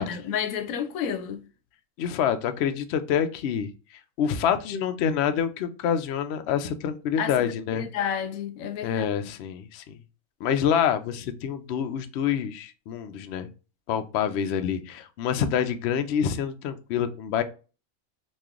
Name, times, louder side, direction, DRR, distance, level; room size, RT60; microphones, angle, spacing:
voice 1, 0.0-1.4 7.2-9.1, left 8 dB, 90° left, 1.0 m, -31 dB
voice 2, 2.0-3.7 4.2-7.9 8.8-10.0 10.4-13.5 13.9-17.4, left 8 dB, 65° left, 0.7 m, -27 dB
3.0 x 2.4 x 3.6 m
omnidirectional pair, 1.4 m